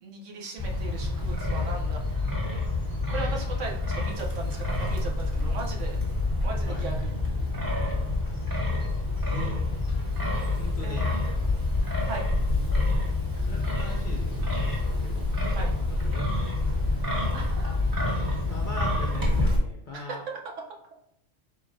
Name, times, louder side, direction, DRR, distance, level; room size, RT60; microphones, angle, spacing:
voice 1, 0.0-2.0 3.1-6.0 6.4-7.1 10.8-11.0 12.1-12.3 15.5-15.7 17.3-17.7 19.9-20.4, right 4 dB, 70° right, 0 dB, 1.1 m, -37 dB
Wind, 0.6-19.6, left 2 dB, 15° right, 1.4 m, -27 dB
voice 2, 10.5-11.2 13.4-15.3 15.8-16.3 18.0-20.3, left 3 dB, 55° left, 0 dB, 0.6 m, -41 dB
4.8 x 3.8 x 2.6 m, 0.73 s
omnidirectional pair, 1.3 m